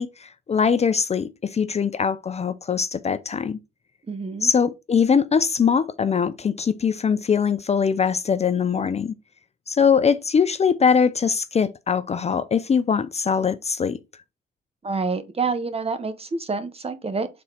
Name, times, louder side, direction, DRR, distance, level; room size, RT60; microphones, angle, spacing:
voice 1, 0.0-3.6 4.4-9.2 9.7-14.0, left 6 dB, 35° left, 0.5 m, -22 dB
voice 2, 4.1-4.5 14.8-17.3, right 4 dB, 30° right, 1.2 m, -27 dB
6.0 x 4.2 x 4.6 m
cardioid pair, 90°, 20 cm